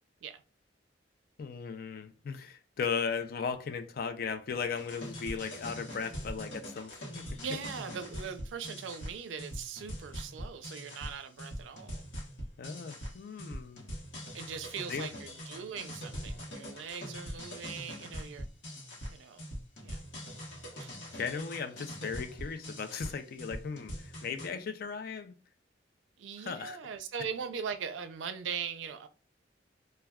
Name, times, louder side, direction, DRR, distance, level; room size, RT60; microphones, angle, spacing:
voice 1, 1.4-7.4 12.6-13.9 14.9-15.1 21.1-25.3 26.4-26.8, left 6 dB, 55° left, 0.4 m, -37 dB
sound 1, 4.8-24.5, equal, 85° left, 1.0 m, -43 dB
voice 2, 7.4-12.0 14.3-18.5 19.1-19.5 19.8-20.0 20.8-20.9 26.2-29.1, right 7 dB, 90° right, 0.4 m, -40 dB
2.2 x 2.2 x 3.4 m
head